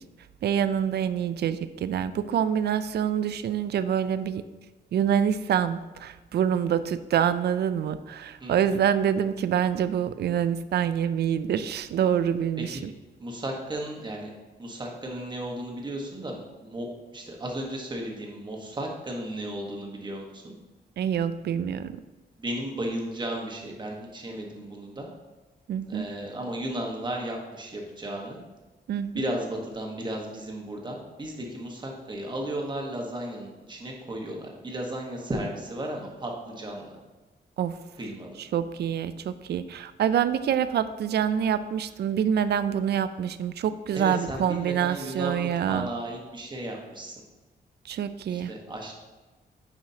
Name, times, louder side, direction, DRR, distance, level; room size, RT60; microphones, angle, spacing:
voice 1, 0.4-4.4 4.9-12.9 21.0-22.0 25.7-26.1 28.9-29.3 37.6-37.8 38.4-45.9 47.9-48.5, right 9 dB, 65° right, 12 dB, 0.4 m, -26 dB
voice 2, 13.2-14.3 14.6-20.5 22.4-25.1 25.9-28.4 29.1-36.9 38.0-38.3 43.9-47.1 48.3-48.9, right 1 dB, 25° right, 0 dB, 1.2 m, -34 dB
9.4 x 4.9 x 2.8 m, 1.2 s
wide cardioid pair, 150°, 18 cm